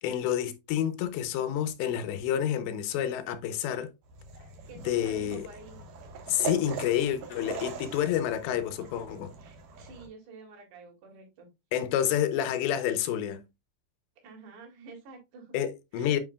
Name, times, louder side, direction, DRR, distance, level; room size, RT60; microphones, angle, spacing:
voice 1, 0.0-3.9 4.8-5.5 6.3-9.3 11.7-13.4 15.5-16.2, left 10 dB, 85° left, 3.1 m, -29 dB
sound 1, 4.0-10.1, right 6 dB, 60° right, 2.7 m, -41 dB
voice 2, 4.7-5.9 9.4-11.5 14.2-15.6 15.9-16.2, right 4 dB, 80° right, 4.7 m, -49 dB
9.2 x 5.3 x 2.3 m
omnidirectional pair, 5.0 m